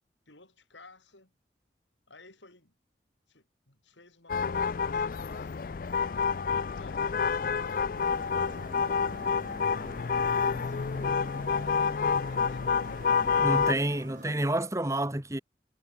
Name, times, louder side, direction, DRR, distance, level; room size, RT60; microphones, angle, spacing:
voice 1, 0.3-1.3 2.1-2.7 3.3-5.6 6.3-7.9 8.1-9.1 10.6-10.9 11.6-14.5, left 3 dB, 85° left, 7.8 m, -56 dB
sound 1, 4.3-13.7, left 5 dB, 50° left, 0.4 m, -28 dB
sound 2, 7.9-14.5, right 1 dB, 45° right, 3.7 m, -48 dB
voice 2, 13.4-15.4, right 1 dB, 15° right, 1.4 m, -29 dB
head